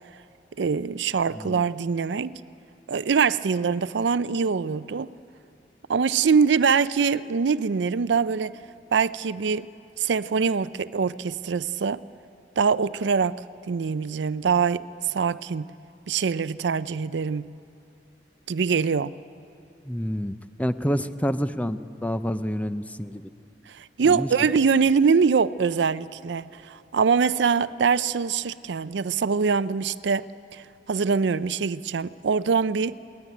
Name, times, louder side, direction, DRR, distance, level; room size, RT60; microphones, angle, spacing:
voice 1, 0.6-2.4 2.9-5.1 5.9-8.5 8.9-9.7 10.0-12.0 12.6-13.4 13.7-15.7 16.1-17.5 18.5-19.1 23.7-30.3 30.5-33.0, right 5 dB, 75° right, 0.5 m, -23 dB
voice 2, 19.9-23.2 24.0-24.3, equal, 10° left, 0.6 m, -28 dB
22.5 x 18.5 x 9.3 m
head